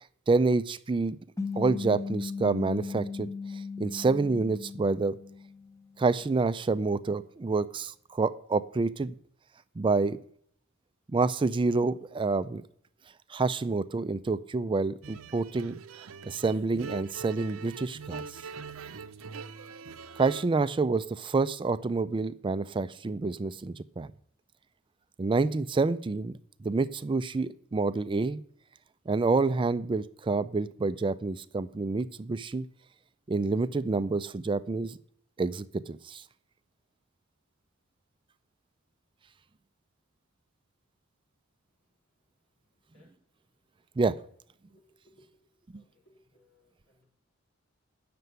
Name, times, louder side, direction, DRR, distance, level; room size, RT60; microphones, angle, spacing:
voice 1, 0.3-1.2 1.5-5.2 6.0-9.1 9.8-10.2 11.1-12.6 13.3-15.8 16.2-18.4 20.2-24.1 25.2-28.4 29.1-32.7 33.3-35.0 35.4-36.2 44.0-44.2, right 3 dB, 25° right, 14 dB, 0.4 m, -28 dB
sound 1, 1.4-6.0, left 4 dB, 15° left, 0.8 m, -37 dB
sound 2, 15.0-20.4, right 5 dB, 70° right, 0.7 m, -43 dB
voice 2, 45.7-47.0, left 1 dB, 80° left, -2 dB, 5.6 m, -64 dB
9.2 x 6.8 x 8.0 m, 0.63 s
head